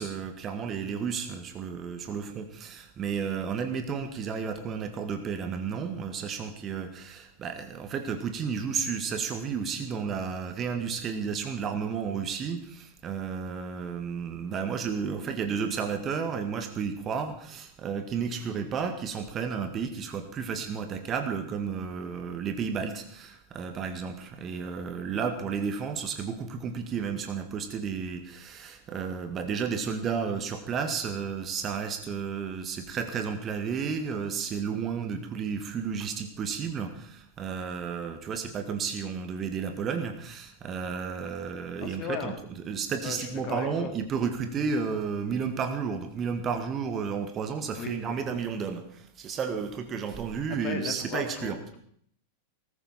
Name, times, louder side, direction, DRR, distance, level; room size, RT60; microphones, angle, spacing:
voice 1, 0.0-51.6, right 6 dB, 25° right, 7 dB, 1.8 m, -32 dB
voice 2, 41.8-42.4 43.0-43.9 47.7-48.3 50.6-51.8, left 7 dB, 35° left, 5 dB, 2.8 m, -36 dB
20.5 x 13.5 x 4.4 m, 0.64 s
figure-of-eight pair, 90°, 0 cm